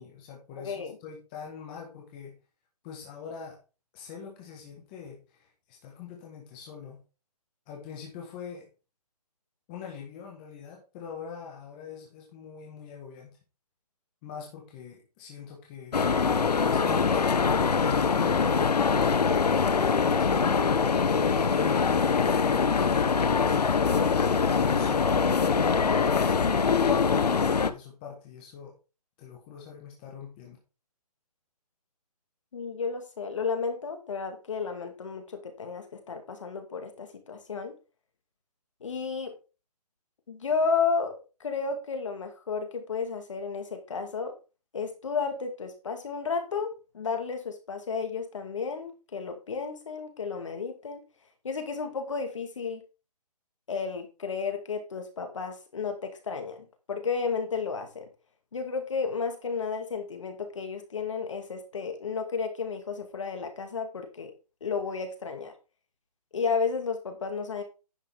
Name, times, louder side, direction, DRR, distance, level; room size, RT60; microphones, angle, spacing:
voice 1, 0.0-2.4 2.8-3.6 3.9-7.0 7.7-8.7 9.7-13.4 14.2-16.0 16.6-21.9 22.5-24.0 24.5-25.1 25.8-28.8 29.2-30.6, left 7 dB, 15° left, -1 dB, 1.4 m, -43 dB
voice 2, 0.6-1.0 32.5-37.7 38.8-39.4 40.3-44.4 44.7-51.0 51.4-52.8 53.7-58.1 58.5-64.3 64.6-65.5 66.3-67.6, left 5 dB, 50° left, 5 dB, 2.3 m, -32 dB
sound 1, 15.9-27.7, left 5 dB, 75° left, 1.1 m, -23 dB
10.5 x 6.9 x 3.5 m, 0.32 s
hypercardioid pair, 175°, 20 cm